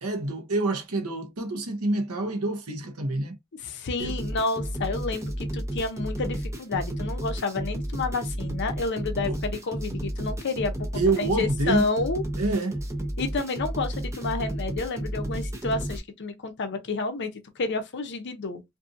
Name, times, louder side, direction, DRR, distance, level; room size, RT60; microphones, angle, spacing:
voice 1, 0.0-3.4 4.0-4.1 9.3-9.4 10.9-11.8 12.4-12.8, right 2 dB, 75° right, 0.8 m, -27 dB
voice 2, 3.6-12.2 13.2-18.6, left 3 dB, 50° left, 0.6 m, -30 dB
sound 1, 4.0-16.0, right 1 dB, 15° right, 0.5 m, -32 dB
2.6 x 2.6 x 2.5 m
head